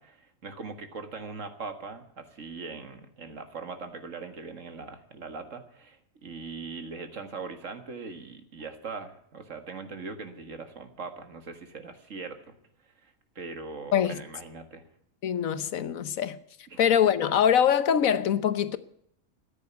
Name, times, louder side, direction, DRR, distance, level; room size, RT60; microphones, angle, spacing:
voice 1, 0.0-12.6 13.0-14.8 16.7-16.8, right 4 dB, 70° right, 2.1 m, -41 dB
voice 2, 15.2-16.4 16.8-18.8, left 9 dB, 85° left, 1.3 m, -23 dB
14.0 x 9.6 x 9.2 m
omnidirectional pair, 1.4 m